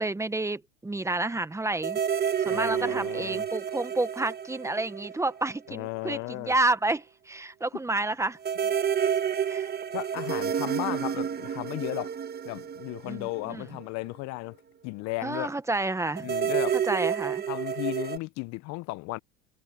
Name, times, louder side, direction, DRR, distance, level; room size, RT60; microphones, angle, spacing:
voice 1, 0.0-2.0 2.4-8.4 9.5-9.7 13.1-13.6 15.2-16.3 16.9-17.4, right 2 dB, 10° right, 1.2 m, -30 dB
sound 1, 1.8-5.6 5.8-5.9 8.4-13.8 16.2-18.2, right 8 dB, 30° right, 1.5 m, -30 dB
voice 2, 2.4-3.4 5.7-6.5 9.9-12.1 12.4-14.6 14.8-15.5 16.2-16.8 17.5-19.2, left 23 dB, 55° left, 0.7 m, -35 dB
hypercardioid pair, 100°, 33 cm